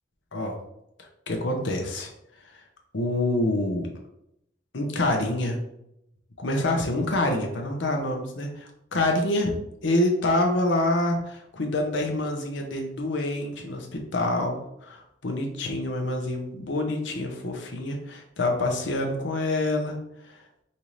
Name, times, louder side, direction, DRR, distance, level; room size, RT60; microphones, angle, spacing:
voice 1, 1.3-2.1 2.9-3.9 4.7-5.6 6.4-9.5 9.8-20.0, left 1 dB, 80° left, 2 dB, 0.9 m, -26 dB
5.5 x 2.7 x 3.1 m, 0.80 s
head